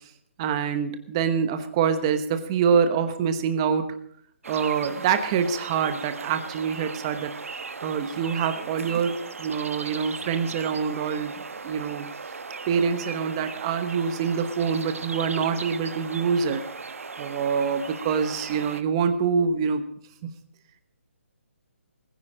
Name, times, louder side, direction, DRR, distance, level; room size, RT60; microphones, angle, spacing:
voice 1, 0.4-3.9 4.5-7.3 7.8-11.4 11.6-12.1 12.7-16.6 17.2-19.8 20.2-20.3, right 6 dB, 20° right, 9 dB, 1.0 m, -25 dB
sound 1, 4.4-18.8, right 4 dB, 85° right, 1.1 m, -37 dB
20.5 x 10.0 x 5.0 m, 0.63 s
hypercardioid pair, 170°, 7 cm